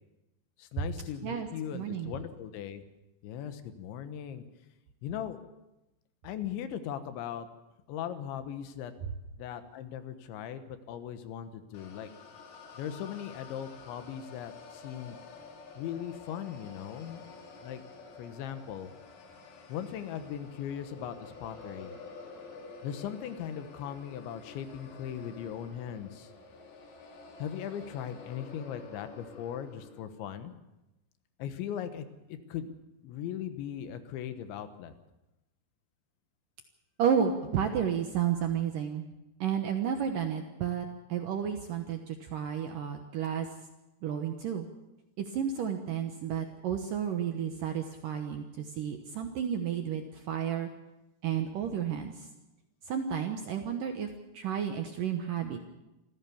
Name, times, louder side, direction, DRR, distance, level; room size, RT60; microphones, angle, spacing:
voice 1, 0.6-2.8 3.2-4.4 5.0-5.4 6.2-7.5 7.9-8.9 9.4-12.1 12.8-15.2 15.8-17.3 17.6-17.8 18.2-18.9 19.7-22.0 22.8-26.3 27.4-30.5 31.4-32.7 33.0-34.9, left 9 dB, 80° left, 10 dB, 3.5 m, -39 dB
voice 2, 1.7-2.1 37.0-39.1 39.4-43.5 44.0-44.7 45.2-50.7 51.2-52.1 52.9-54.1 54.3-55.6, right 8 dB, 70° right, 5 dB, 2.1 m, -31 dB
sound 1, 11.7-30.0, left 4 dB, 60° left, 4.3 m, -49 dB
25.5 x 15.0 x 7.1 m, 0.97 s
omnidirectional pair, 5.3 m